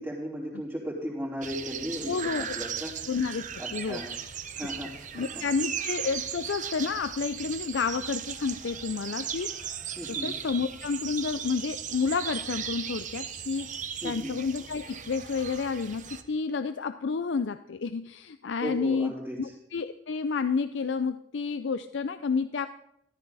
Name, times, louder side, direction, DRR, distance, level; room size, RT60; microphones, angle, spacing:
voice 1, 0.0-2.9 3.6-4.1 4.6-4.9 5.2-5.4 10.0-10.3 14.0-14.3 18.6-19.5, equal, 10° right, -10 dB, 3.6 m, -36 dB
sound 1, 1.4-16.2, right 8 dB, 40° right, 0.9 m, -37 dB
voice 2, 2.1-2.4 3.1-4.0 4.6-4.7 5.1-9.5 10.1-22.7, left 5 dB, 70° left, 11 dB, 0.5 m, -30 dB
14.0 x 13.5 x 4.1 m, 0.76 s
head